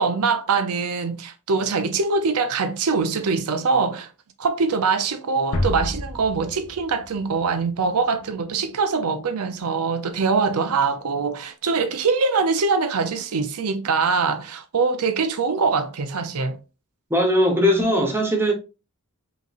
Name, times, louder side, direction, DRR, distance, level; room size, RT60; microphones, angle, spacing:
voice 1, 0.0-4.1 4.4-16.6, right 4 dB, 80° right, 0.6 m, -23 dB
sound 1, 5.5-8.4, left 1 dB, 55° left, 0.9 m, -30 dB
voice 2, 17.1-18.5, equal, 10° right, 1.0 m, -19 dB
5.5 x 2.9 x 2.5 m
head